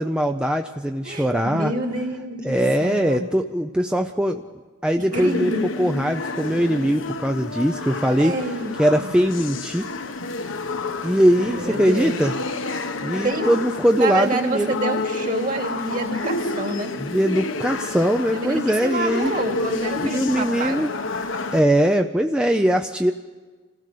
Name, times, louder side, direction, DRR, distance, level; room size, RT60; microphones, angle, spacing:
voice 1, 0.0-1.7 2.4-4.4 4.8-5.5 5.8-8.3 8.8-9.8 11.0-12.3 13.0-14.7 17.0-19.3 20.0-20.9 21.5-23.1, equal, 5° right, 4 dB, 0.5 m, -21 dB
voice 2, 1.0-3.3 5.1-5.6 8.2-8.7 9.0-9.1 11.4-12.1 13.2-13.6 13.9-16.9 18.3-20.8, right 2 dB, 40° right, 3 dB, 2.5 m, -27 dB
sound 1, 5.1-21.6, left 3 dB, 75° left, 1.2 m, -30 dB
26.0 x 15.5 x 6.7 m, 1.4 s
head